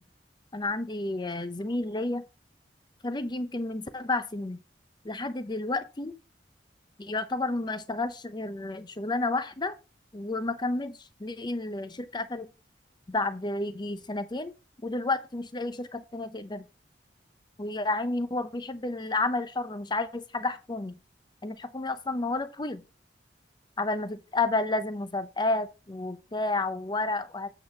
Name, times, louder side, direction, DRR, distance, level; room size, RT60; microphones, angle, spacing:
voice 1, 0.5-2.2 3.0-4.6 5.0-6.1 7.0-9.7 10.1-12.5 13.1-14.5 14.8-16.6 17.6-20.9 21.4-22.8 23.8-27.5, left 2 dB, 25° left, 0.7 m, -31 dB
8.8 x 3.9 x 6.0 m
head